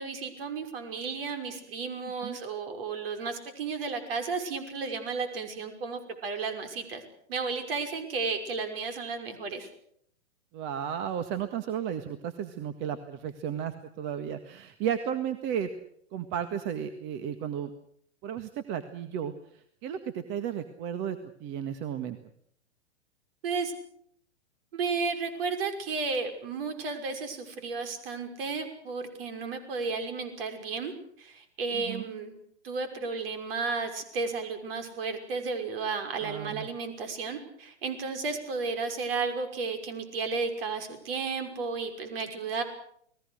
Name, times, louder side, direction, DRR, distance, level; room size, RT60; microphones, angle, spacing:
voice 1, 0.0-7.0 7.3-9.7 23.4-23.7 24.7-30.9 31.2-32.3 32.6-42.6, right 4 dB, 55° right, 7 dB, 5.9 m, -33 dB
voice 2, 2.0-2.4 10.5-15.7 16.1-17.7 18.2-22.2 31.7-32.1 36.2-36.7, right 9 dB, 35° right, 10 dB, 1.7 m, -34 dB
30.0 x 20.0 x 6.5 m, 0.68 s
figure-of-eight pair, 105°, 35 cm